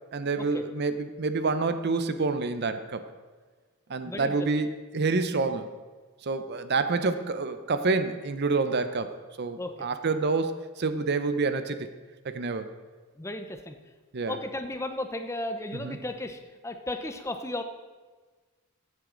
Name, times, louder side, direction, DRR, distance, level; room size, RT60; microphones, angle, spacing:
voice 1, 0.1-3.0 3.9-4.7 4.9-5.7 6.2-9.1 9.4-11.9 12.2-12.7 14.1-14.4 15.8-16.0, right 3 dB, 50° right, 10 dB, 0.6 m, -28 dB
voice 2, 4.0-4.4 9.6-9.9 13.2-13.7 14.3-17.6, left 1 dB, 15° left, 7 dB, 0.6 m, -35 dB
15.0 x 8.1 x 3.8 m, 1.4 s
head